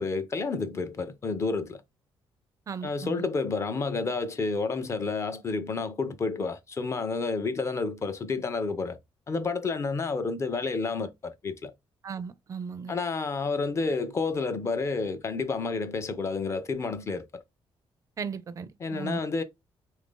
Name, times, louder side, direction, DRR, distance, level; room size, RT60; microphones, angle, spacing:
voice 1, 0.0-1.8 2.8-9.0 9.3-11.7 12.9-17.4 18.8-19.4, left 4 dB, 30° left, 0.5 m, -30 dB
voice 2, 2.7-3.3 12.0-13.0 18.2-19.2, right 6 dB, 35° right, 0.4 m, -36 dB
3.2 x 2.5 x 3.6 m
cardioid pair, 145°, 10 cm